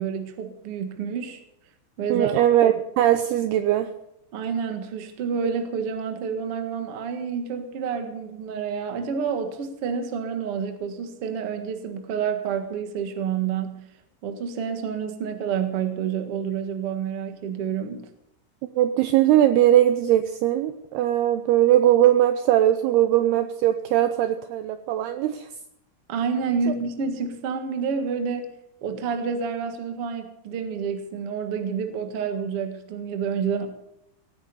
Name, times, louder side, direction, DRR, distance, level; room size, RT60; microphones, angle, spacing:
voice 1, 0.0-1.4 2.0-2.3 4.3-13.8 14.2-18.1 26.1-28.5 28.8-33.7, right 6 dB, 65° right, 6 dB, 1.4 m, -29 dB
voice 2, 2.1-3.9 18.8-25.5, right 12 dB, 90° right, 9 dB, 2.3 m, -20 dB
18.0 x 9.2 x 7.0 m, 0.81 s
omnidirectional pair, 5.4 m